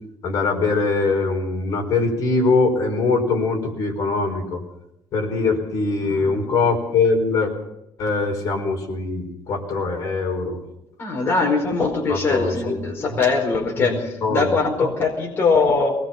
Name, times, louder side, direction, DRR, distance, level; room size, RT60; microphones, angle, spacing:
voice 1, 0.2-4.6 5.1-7.5 8.0-10.6 12.1-12.8 13.1-13.2 13.8-14.9, left 3 dB, 50° left, 2 dB, 5.0 m, -22 dB
voice 2, 6.0-6.4 11.0-15.9, left 4 dB, 30° left, 0 dB, 4.6 m, -21 dB
23.0 x 20.0 x 5.9 m, 0.83 s
cardioid pair, 170°, 8 cm